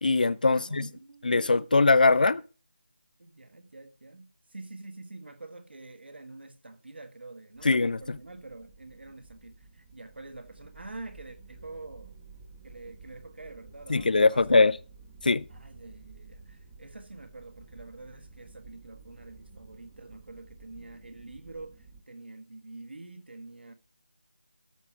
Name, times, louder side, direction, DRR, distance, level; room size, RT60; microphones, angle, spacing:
voice 1, 0.0-0.9 1.2-2.4 7.6-8.2 13.9-14.7 15.2-15.4, left 3 dB, 55° left, 0.5 m, -22 dB
voice 2, 0.5-1.7 3.2-12.2 12.6-14.6 15.5-23.7, right 2 dB, 80° right, 1.5 m, -46 dB
sound 1, 7.5-22.0, right 3 dB, 10° right, 0.5 m, -52 dB
13.0 x 5.0 x 5.8 m
figure-of-eight pair, 175°, 6 cm